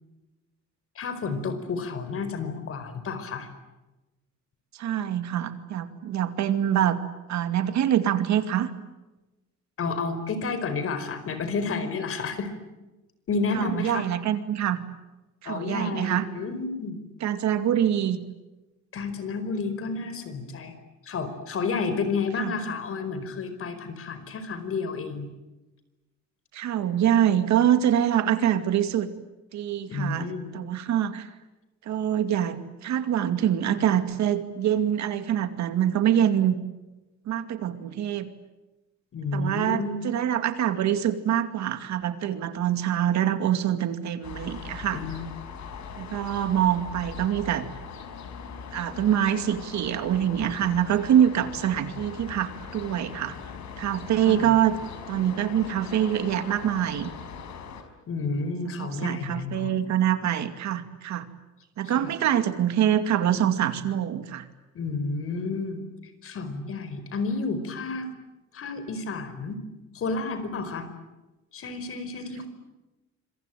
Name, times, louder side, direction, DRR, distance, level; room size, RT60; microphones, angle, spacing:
voice 1, 0.9-3.5 9.8-12.5 13.3-14.1 15.4-17.0 18.9-20.7 21.0-25.3 29.9-30.5 39.1-40.1 44.9-45.3 54.2-54.5 58.1-59.7 61.9-62.1 64.7-65.8 66.2-68.1 68.5-69.6 69.9-70.9 71.5-72.5, left 4 dB, 50° left, 10 dB, 4.8 m, -31 dB
voice 2, 4.7-7.0 7.3-8.7 13.5-14.8 15.4-16.3 17.2-18.2 22.4-22.5 26.5-29.1 29.5-31.3 31.8-36.6 37.3-38.3 39.3-45.0 46.0-47.7 48.7-53.4 53.8-54.8 55.1-57.1 58.6-61.3 61.8-64.5, right 10 dB, 65° right, 9 dB, 2.4 m, -25 dB
sound 1, 44.2-57.8, left 6 dB, 70° left, 4.9 m, -41 dB
26.5 x 24.5 x 9.2 m, 1.1 s
cardioid pair, 150°, 30 cm